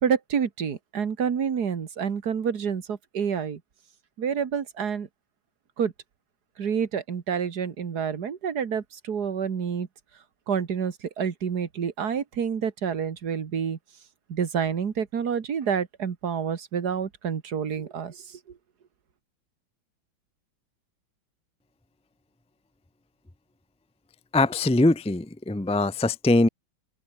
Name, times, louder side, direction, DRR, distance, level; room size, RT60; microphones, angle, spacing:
voice 1, 0.0-3.6 4.2-5.1 5.8-5.9 6.6-9.9 10.5-13.8 14.3-18.4, right 7 dB, 55° right, 2.1 m, -28 dB
voice 2, 24.3-26.5, left 2 dB, 10° left, 0.4 m, -22 dB
open air
omnidirectional pair, 2.2 m